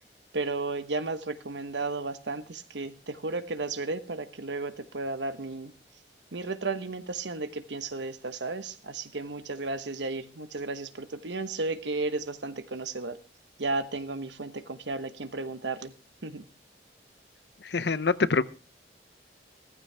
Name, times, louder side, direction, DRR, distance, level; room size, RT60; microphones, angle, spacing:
voice 1, 0.3-5.7 6.3-13.2 13.6-15.9 16.2-16.4, right 3 dB, 85° right, 11 dB, 1.1 m, -34 dB
voice 2, 17.6-18.5, left 4 dB, 70° left, 16 dB, 0.6 m, -25 dB
15.0 x 14.5 x 3.4 m, 0.32 s
head